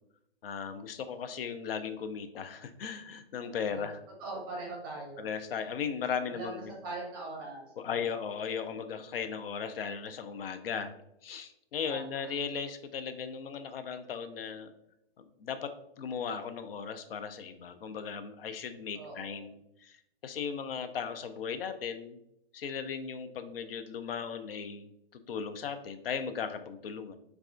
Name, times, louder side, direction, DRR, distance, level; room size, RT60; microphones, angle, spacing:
voice 1, 0.4-4.0 5.2-6.6 7.8-10.9 11.2-14.7 15.4-15.7 16.0-20.0 20.2-22.2 22.5-27.1, left 6 dB, 65° left, 9 dB, 0.5 m, -37 dB
voice 2, 4.2-5.3 6.3-8.2 11.9-12.3 18.9-19.4, right 2 dB, 20° right, -2 dB, 0.6 m, -41 dB
4.0 x 2.3 x 2.4 m, 0.80 s
hypercardioid pair, 160°, 31 cm